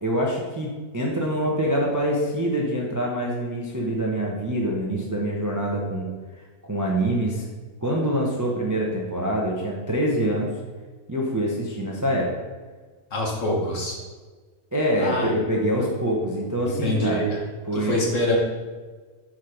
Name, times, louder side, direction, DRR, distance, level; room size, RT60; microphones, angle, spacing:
voice 1, 0.0-6.1 6.6-7.4 7.8-10.5 11.1-12.3 14.7-17.3 17.7-17.9, right 1 dB, 15° right, -2 dB, 0.6 m, -25 dB
voice 2, 13.1-14.0 15.0-15.3 15.7-15.8 16.8-17.4 17.7-18.4, left 1 dB, 50° left, -2 dB, 1.6 m, -25 dB
6.0 x 4.6 x 5.0 m, 1.4 s
omnidirectional pair, 1.7 m